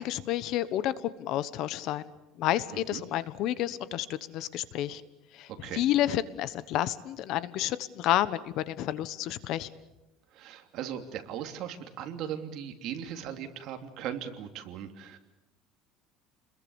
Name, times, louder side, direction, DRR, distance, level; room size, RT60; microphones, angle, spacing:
voice 1, 0.0-2.1 2.4-5.0 5.3-9.7, left 13 dB, 55° left, 15 dB, 1.2 m, -30 dB
voice 2, 10.3-15.2, right 9 dB, 50° right, 5 dB, 2.9 m, -38 dB
30.0 x 21.5 x 7.2 m, 0.96 s
cardioid pair, 155°, 0 cm